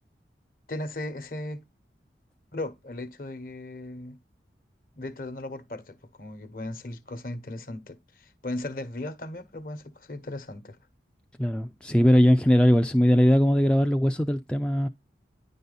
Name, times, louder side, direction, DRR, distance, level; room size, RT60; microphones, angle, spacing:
voice 1, 0.7-1.6 2.5-4.2 4.9-10.8, left 1 dB, 50° left, 1.1 m, -37 dB
voice 2, 11.4-14.9, equal, 5° left, 0.4 m, -20 dB
10.0 x 4.0 x 4.0 m
head